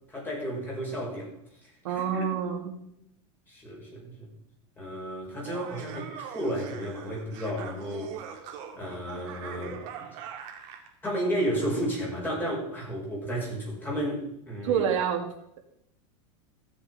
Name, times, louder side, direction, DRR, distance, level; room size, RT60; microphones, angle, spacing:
voice 1, 0.1-2.2 3.5-4.3 4.8-8.2 8.8-9.8 10.1-10.2 11.0-14.8, equal, 10° left, -4 dB, 5.9 m, -33 dB
voice 2, 1.8-2.7 14.6-15.2, right 8 dB, 80° right, 3 dB, 2.3 m, -27 dB
Laughter, 5.3-10.9, right 8 dB, 55° right, 2.2 m, -42 dB
15.5 x 7.1 x 4.9 m, 0.75 s
supercardioid pair, 140°, 16 cm